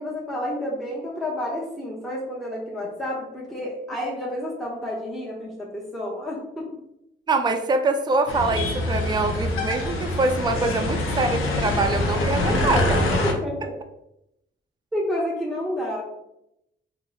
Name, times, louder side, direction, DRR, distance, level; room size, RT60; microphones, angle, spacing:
voice 1, 0.0-6.6 12.7-12.8 13.2-13.7 14.9-16.0, left 1 dB, ahead, -4 dB, 0.7 m, -30 dB
voice 2, 7.3-13.2, right 3 dB, 20° right, 5 dB, 0.4 m, -24 dB
sound 1, 8.3-13.3, left 2 dB, 85° left, 0.6 m, -25 dB
2.9 x 2.0 x 3.8 m, 0.82 s
cardioid pair, 70°, 21 cm